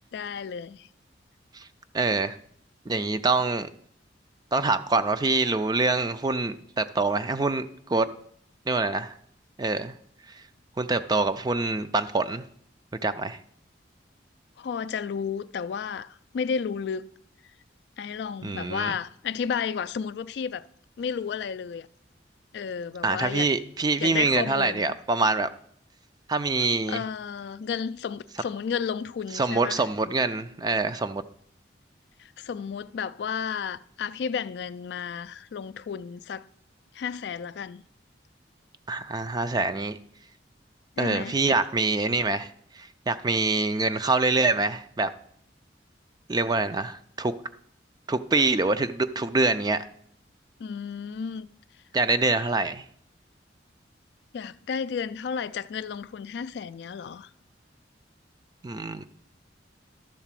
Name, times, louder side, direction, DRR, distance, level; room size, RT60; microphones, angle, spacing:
voice 1, 0.1-0.9 14.6-17.1 18.0-20.6 21.0-21.9 22.5-23.5 24.0-24.9 26.9-29.8 32.2-36.5 36.9-37.8 41.0-41.4 50.6-51.5 54.3-57.3, left 6 dB, 65° left, 0.3 m, -32 dB
voice 2, 1.9-2.4 2.9-3.7 4.5-8.1 8.7-9.1 9.6-9.9 10.3-10.4 10.8-12.4 13.0-13.4 18.4-19.0 23.0-25.5 26.3-27.0 29.3-31.2 38.9-40.0 41.0-45.1 46.3-47.3 48.1-49.8 51.9-52.8 58.6-59.1, right 3 dB, 20° right, 0.4 m, -25 dB
12.0 x 4.0 x 7.5 m
head